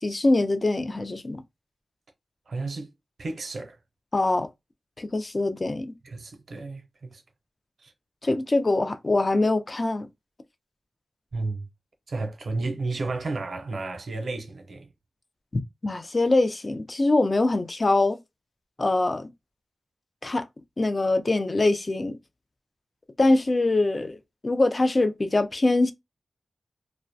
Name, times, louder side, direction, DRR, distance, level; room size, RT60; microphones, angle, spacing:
voice 1, 0.0-1.4 4.1-4.5 5.0-5.9 8.2-10.1 15.8-18.2 18.8-19.3 20.2-20.5 20.8-22.2 23.2-24.2 24.4-25.9, left 2 dB, 45° left, 0.4 m, -23 dB
voice 2, 2.5-2.9 3.2-3.8 6.0-7.2 7.8-7.9 11.3-11.7 12.1-14.9, right 3 dB, 80° right, 0.5 m, -32 dB
2.4 x 2.1 x 2.5 m
cardioid pair, 50°, 0 cm